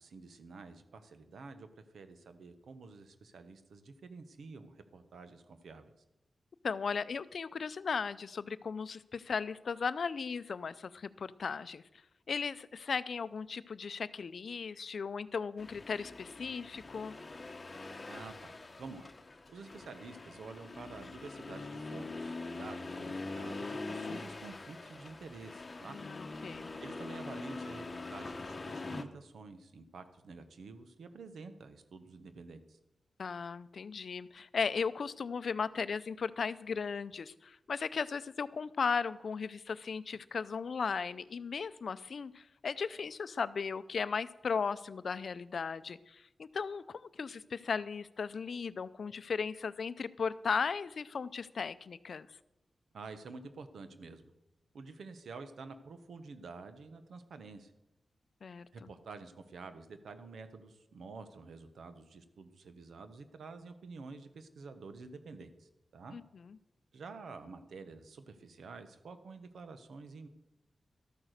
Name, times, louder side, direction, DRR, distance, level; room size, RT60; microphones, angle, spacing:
voice 1, 0.0-5.9 18.1-19.1 19.5-26.0 26.8-32.8 52.9-54.2 54.7-57.7 58.7-66.2 66.9-70.3, right 4 dB, 85° right, 10 dB, 1.1 m, -49 dB
voice 2, 6.6-11.8 12.3-17.1 25.8-26.7 33.2-52.3 58.4-58.7 66.1-66.2 66.5-66.6, left 5 dB, 65° left, 15 dB, 0.5 m, -36 dB
Accelerating revving vroom, 15.6-29.0, left 3 dB, 35° left, 1.0 m, -43 dB
13.0 x 9.1 x 6.6 m, 0.93 s
wide cardioid pair, 95°, 0 cm